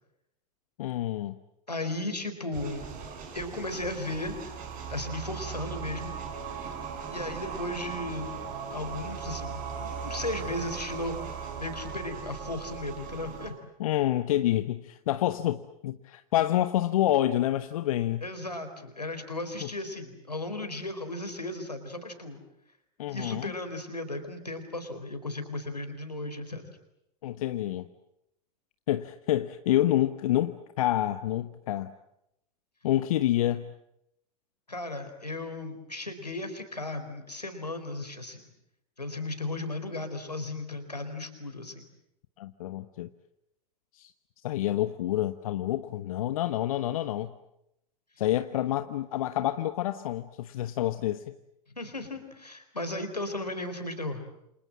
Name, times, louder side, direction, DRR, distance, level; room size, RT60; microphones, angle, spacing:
voice 1, 0.8-1.4 13.8-18.2 19.6-19.7 23.0-23.5 27.2-27.9 28.9-31.9 32.8-33.7 42.4-43.1 43.9-44.1 44.4-47.3 48.2-51.2, left 13 dB, 60° left, 1.2 m, -28 dB
voice 2, 1.7-2.8 3.3-4.5 4.9-6.2 7.1-8.3 8.7-13.5 18.2-22.4 23.1-26.6 34.7-38.4 39.0-41.8 51.8-54.2, left 2 dB, 90° left, 4.3 m, -35 dB
sound 1, 2.5-13.5, right 6 dB, 40° right, 6.5 m, -38 dB
29.0 x 27.5 x 7.5 m
figure-of-eight pair, 85°, 20 cm